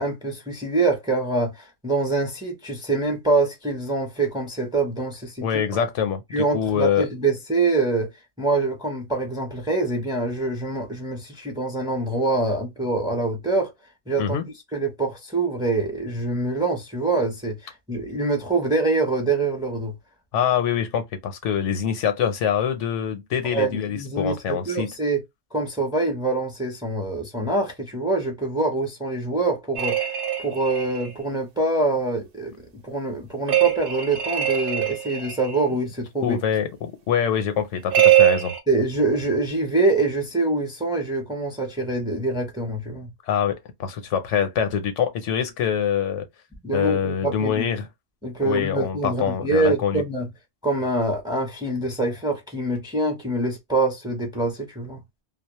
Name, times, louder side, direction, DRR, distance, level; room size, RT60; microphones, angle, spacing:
voice 1, 0.0-5.9 6.3-8.1 8.4-13.7 14.1-17.6 17.9-19.9 23.5-25.2 25.5-30.1 30.4-32.5 32.8-36.4 38.7-43.1 46.6-47.7 48.2-50.3 50.6-55.0, right 2 dB, 5° right, 0.6 m, -25 dB
voice 2, 5.4-6.2 6.5-7.1 14.2-14.4 20.3-24.9 36.2-38.5 43.3-46.3 46.7-47.9 48.4-50.0, left 8 dB, 80° left, 0.9 m, -24 dB
sound 1, 29.8-31.1 33.5-35.6 37.9-38.6, right 12 dB, 55° right, 0.7 m, -21 dB
2.2 x 2.0 x 2.9 m
omnidirectional pair, 1.2 m